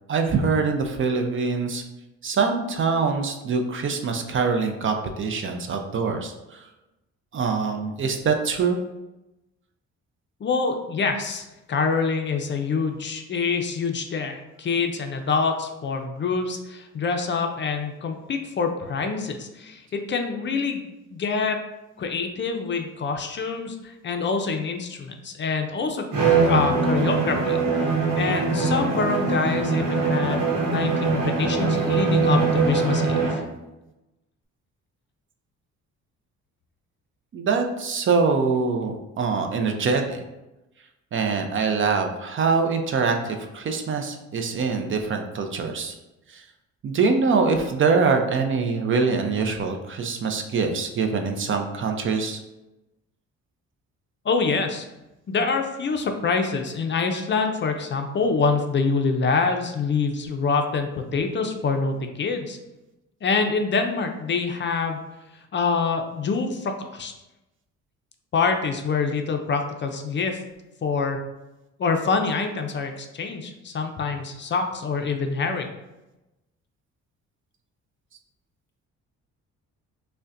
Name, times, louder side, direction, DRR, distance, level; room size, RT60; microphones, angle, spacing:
voice 1, 0.1-1.8 2.2-6.7 7.3-8.8 37.3-40.2 41.1-45.9 46.3-46.4 46.8-52.4, right 4 dB, 45° right, 5 dB, 0.5 m, -24 dB
voice 2, 10.4-20.8 21.1-21.6 22.0-26.1 26.4-27.9 28.2-33.4 54.2-54.9 55.3-62.6 63.2-65.0 65.5-67.1 68.3-70.4 70.8-71.2 71.8-75.7, left 4 dB, 40° left, 5 dB, 0.4 m, -26 dB
Bowed string instrument, 26.1-33.5, right 4 dB, 75° right, 0.9 m, -22 dB
5.1 x 2.2 x 2.5 m, 0.99 s
cardioid pair, 90°, 30 cm